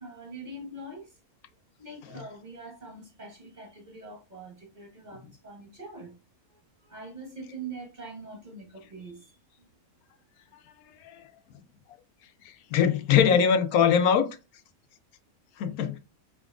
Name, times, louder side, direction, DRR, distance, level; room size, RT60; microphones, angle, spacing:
voice 1, 0.0-1.1 1.8-6.1 6.8-9.4, right 2 dB, 35° right, 1.2 m, -43 dB
voice 2, 12.7-14.3 15.6-16.0, left 7 dB, 85° left, 1.1 m, -22 dB
4.5 x 3.6 x 2.4 m
omnidirectional pair, 1.5 m